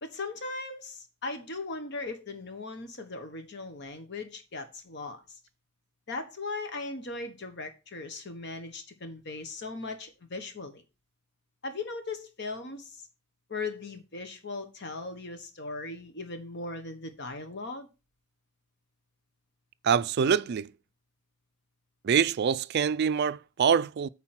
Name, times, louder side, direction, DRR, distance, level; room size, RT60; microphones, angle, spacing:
voice 1, 0.0-5.4 6.1-10.8 11.6-13.0 13.5-17.9, left 3 dB, 55° left, 1.2 m, -38 dB
voice 2, 19.8-20.7 22.0-24.1, right 7 dB, 50° right, 0.3 m, -25 dB
8.8 x 4.0 x 5.8 m
head